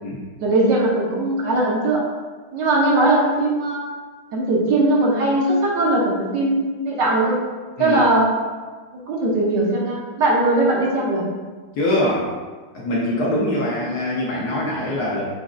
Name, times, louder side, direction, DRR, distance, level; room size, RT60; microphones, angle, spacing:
voice 1, 0.4-2.0 2.5-3.8 4.3-7.4 7.8-8.3 9.1-11.2, right 2 dB, 65° right, -3 dB, 1.3 m, -19 dB
voice 2, 11.7-12.3 12.7-15.2, left 1 dB, 65° left, -4 dB, 1.0 m, -23 dB
6.1 x 3.0 x 2.5 m, 1.4 s
omnidirectional pair, 2.3 m